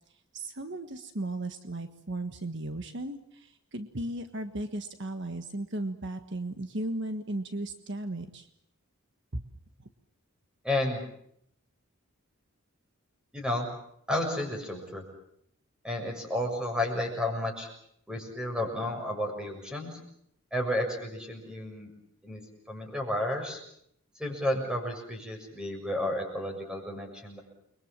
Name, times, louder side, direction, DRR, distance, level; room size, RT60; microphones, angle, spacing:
voice 1, 0.3-8.5 9.3-9.4, right 1 dB, 55° right, 7 dB, 1.5 m, -36 dB
voice 2, 10.6-11.0 13.3-13.7 14.1-15.0 15.8-17.7 18.1-20.0 20.5-21.9 22.2-22.4 22.7-23.6 24.2-27.4, left 1 dB, 5° right, 2 dB, 6.9 m, -32 dB
30.0 x 23.0 x 7.5 m, 0.73 s
head